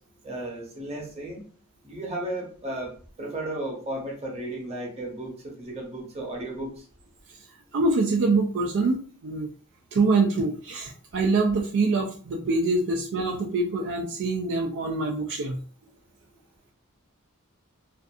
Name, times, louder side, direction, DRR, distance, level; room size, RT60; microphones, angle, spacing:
voice 1, 0.2-1.4 1.8-2.9 3.2-6.9, right 1 dB, 30° right, -1 dB, 0.8 m, -34 dB
voice 2, 7.7-9.5 9.9-15.6, right 3 dB, 60° right, 0 dB, 0.4 m, -25 dB
2.5 x 2.4 x 2.4 m, 0.41 s
head